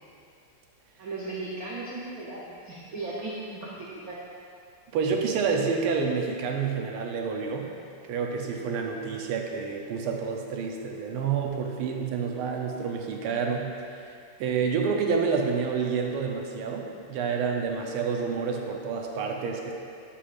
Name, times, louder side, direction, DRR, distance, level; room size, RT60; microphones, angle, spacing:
voice 1, 1.0-4.2, right 2 dB, 60° right, -5 dB, 0.9 m, -36 dB
voice 2, 4.9-7.7 8.1-14.0 14.4-19.7, right 5 dB, 85° right, 1 dB, 1.6 m, -28 dB
8.3 x 7.8 x 2.4 m, 2.4 s
omnidirectional pair, 2.4 m